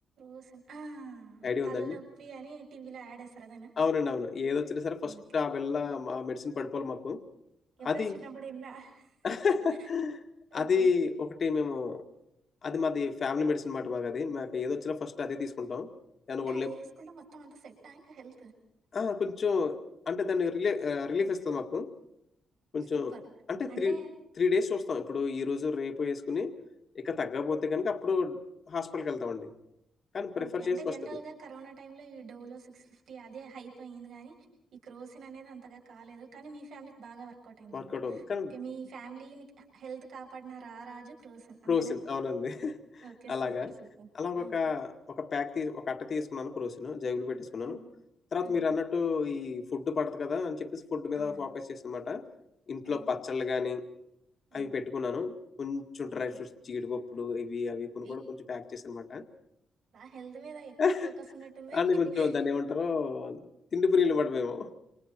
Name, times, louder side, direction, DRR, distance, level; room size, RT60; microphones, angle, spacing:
voice 1, 0.2-3.7 5.0-5.2 7.8-9.1 9.8-9.9 10.5-10.9 16.4-18.5 22.9-23.2 23.7-24.1 30.4-34.4 34.7-38.2 38.5-41.9 43.0-44.6 47.6-47.8 48.4-48.6 51.1-51.6 52.8-53.1 54.5-54.8 56.1-56.4 58.0-58.2 59.9-60.7 61.0-61.8 62.1-62.3, right 5 dB, 65° right, 1 dB, 6.8 m, -46 dB
voice 2, 1.4-2.0 3.8-7.2 7.8-8.1 9.2-10.2 10.5-12.0 12.6-15.9 16.3-16.7 18.9-19.8 20.1-21.9 22.7-23.2 23.5-24.0 24.4-26.5 27.0-28.4 28.7-29.5 30.1-30.9 37.7-38.5 41.7-43.7 44.1-47.8 48.3-52.2 52.7-53.9 54.5-59.2 60.8-61.1 61.7-64.7, left 5 dB, 40° left, 5 dB, 2.0 m, -31 dB
28.5 x 26.5 x 4.5 m, 0.79 s
cardioid pair, 150°, 0 cm